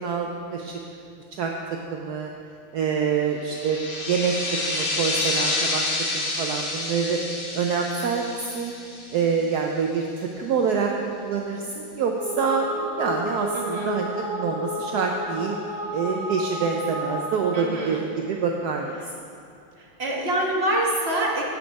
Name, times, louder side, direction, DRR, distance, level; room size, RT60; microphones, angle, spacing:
voice 1, 0.0-0.8 1.4-1.5 1.9-2.3 2.7-4.4 4.7-5.8 6.1-7.2 7.5-8.7 9.1-15.5 15.9-18.9, right 6 dB, 75° right, 1 dB, 0.9 m, -26 dB
sound 1, 3.4-9.7, left 2 dB, 70° left, 2.2 m, -29 dB
sound 2, 12.0-17.8, equal, 5° right, 1.9 m, -32 dB
voice 2, 13.5-13.9 17.5-18.0 20.0-21.4, right 1 dB, 35° right, -3 dB, 1.2 m, -25 dB
8.5 x 7.7 x 5.2 m, 2.6 s
omnidirectional pair, 2.3 m